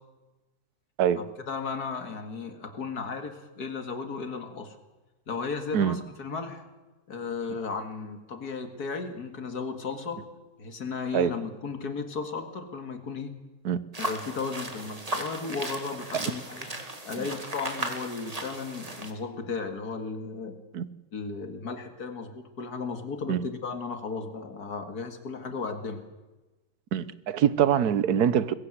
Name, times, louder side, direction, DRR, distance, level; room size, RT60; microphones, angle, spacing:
voice 1, 1.2-4.8 5.3-6.6 7.1-10.2 10.6-13.3 14.0-16.7 17.1-20.6 21.1-26.0, left 4 dB, 85° left, 2.5 m, -35 dB
sound 1, 13.9-19.1, right 1 dB, 25° right, 2.2 m, -36 dB
voice 2, 26.9-28.5, right 9 dB, 80° right, 1.4 m, -24 dB
21.5 x 16.0 x 8.0 m
omnidirectional pair, 1.6 m